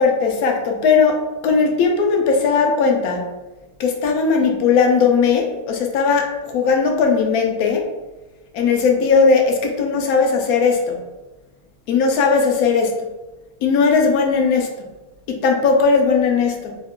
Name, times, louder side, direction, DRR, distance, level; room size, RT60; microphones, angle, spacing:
voice 1, 0.0-3.4 3.8-7.9 8.5-11.0 11.9-13.1 13.6-14.9 15.3-16.8, left 5 dB, 75° left, 2 dB, 1.0 m, -18 dB
3.0 x 2.3 x 3.5 m, 1.1 s
omnidirectional pair, 1.7 m